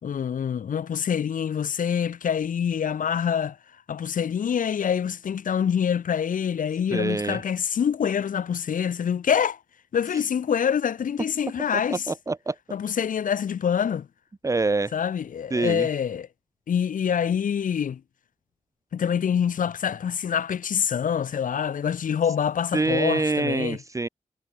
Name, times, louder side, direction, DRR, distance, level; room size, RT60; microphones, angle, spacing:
voice 1, 0.0-3.6 3.9-9.6 9.9-12.1 12.7-14.1 14.9-16.3 16.7-18.0 18.9-23.8, left 8 dB, 90° left, 4.5 m, -25 dB
voice 2, 6.9-7.4 11.9-12.5 14.4-14.9 15.5-15.9 22.7-24.1, right 3 dB, 25° right, 1.1 m, -25 dB
wide cardioid pair, 120°, 13 cm